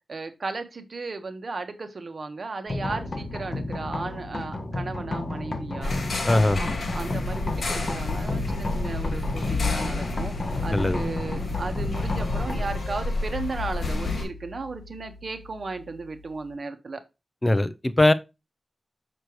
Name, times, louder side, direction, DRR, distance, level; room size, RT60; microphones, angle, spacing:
voice 1, 0.1-5.9 6.6-10.3 10.6-17.0, right 3 dB, 55° right, 1.2 m, -35 dB
sound 1, 2.7-16.5, left 2 dB, 40° left, 1.3 m, -33 dB
sound 2, 5.8-14.2, left 3 dB, 80° left, 1.8 m, -30 dB
voice 2, 6.3-6.6 10.7-11.0 17.4-18.1, left 1 dB, 20° left, 0.4 m, -20 dB
6.6 x 6.2 x 3.0 m
wide cardioid pair, 120°, 0 cm